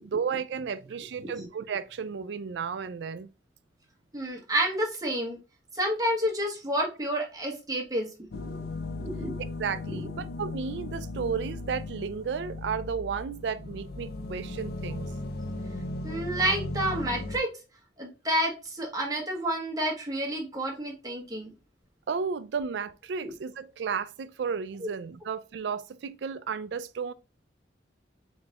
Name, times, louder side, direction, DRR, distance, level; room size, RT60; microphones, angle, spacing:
voice 1, 0.0-3.3 9.6-15.1 22.1-27.1, right 6 dB, 75° right, 0.4 m, -33 dB
voice 2, 4.1-5.4 5.7-8.5 9.0-9.3 16.0-17.5 18.0-21.5 23.2-23.3, right 1 dB, 20° right, 1.1 m, -29 dB
sound 1, 8.3-17.4, left 2 dB, 60° left, 0.4 m, -37 dB
4.0 x 3.8 x 2.3 m
head